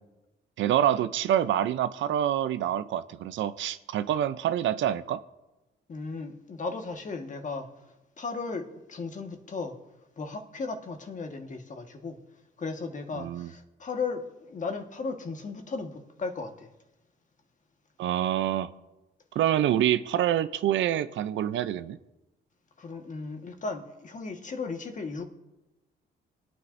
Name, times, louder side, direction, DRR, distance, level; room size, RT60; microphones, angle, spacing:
voice 1, 0.6-5.2 13.1-13.5 18.0-18.7 19.3-22.0, right 11 dB, 75° right, 0.6 m, -26 dB
voice 2, 5.9-9.8 10.2-12.2 12.6-16.7 22.8-25.2, left 4 dB, 40° left, 1.5 m, -36 dB
25.0 x 9.5 x 2.6 m
cardioid pair, 90°, 20 cm